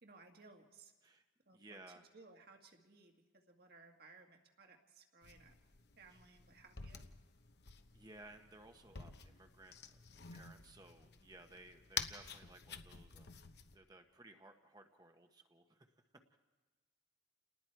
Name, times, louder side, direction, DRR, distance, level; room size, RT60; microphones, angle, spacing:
voice 1, 0.0-0.9 1.5-1.8 2.1-5.6 6.0-7.1, right 3 dB, 50° right, 3 dB, 1.8 m, -61 dB
voice 2, 1.0-2.0 6.1-6.2 7.9-10.0 10.3-13.3 13.7-15.9 16.3-16.4, right 2 dB, 20° right, 5 dB, 1.0 m, -59 dB
sound 1, 5.2-13.7, left 7 dB, 55° left, 1.0 m, -49 dB
29.5 x 19.5 x 4.6 m, 1.3 s
head